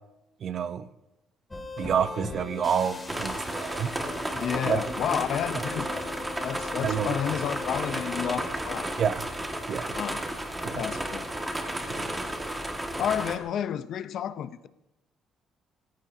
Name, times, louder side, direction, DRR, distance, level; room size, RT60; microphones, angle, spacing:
voice 1, 0.4-0.9 1.8-3.9 4.7-4.8 6.8-7.2 9.0-9.2 9.7-9.9 10.6-10.8 11.9-12.1, right 8 dB, 50° right, 12 dB, 0.8 m, -28 dB
sound 1, 1.5-8.4, left 3 dB, 15° left, 2.5 m, -40 dB
sound 2, 3.1-13.4, right 1 dB, 10° right, 1.9 m, -33 dB
voice 2, 4.3-6.0 6.4-8.9 9.9-10.2 10.7-11.3 12.0-12.2 13.0-14.7, left 9 dB, 65° left, 13 dB, 0.7 m, -31 dB
27.0 x 15.5 x 2.8 m, 0.94 s
cardioid pair, 115°, 0 cm